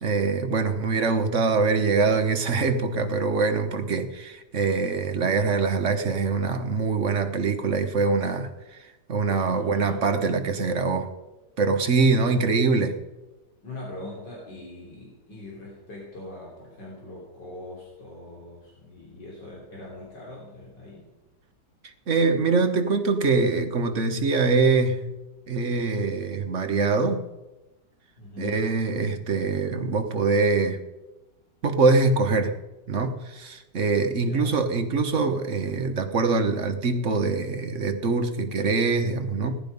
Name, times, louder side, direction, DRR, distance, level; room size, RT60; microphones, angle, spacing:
voice 1, 0.0-11.1 11.6-12.9 22.1-25.1 25.5-27.2 28.4-30.8 31.6-32.5 32.9-39.6, right 4 dB, 50° right, 6 dB, 1.4 m, -24 dB
voice 2, 9.5-10.0 12.2-12.6 13.6-21.1 28.2-28.7 34.2-34.5, left 2 dB, 85° left, -5 dB, 4.0 m, -42 dB
17.5 x 11.5 x 5.3 m, 1.1 s
omnidirectional pair, 1.9 m